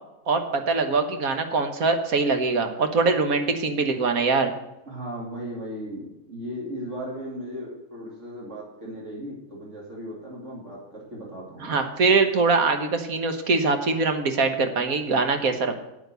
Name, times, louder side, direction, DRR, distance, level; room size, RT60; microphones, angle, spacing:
voice 1, 0.3-4.5 11.6-15.7, right 4 dB, 70° right, 7 dB, 1.7 m, -23 dB
voice 2, 4.9-11.8, equal, 55° right, -4 dB, 3.0 m, -36 dB
9.2 x 8.8 x 6.7 m, 0.94 s
omnidirectional pair, 1.5 m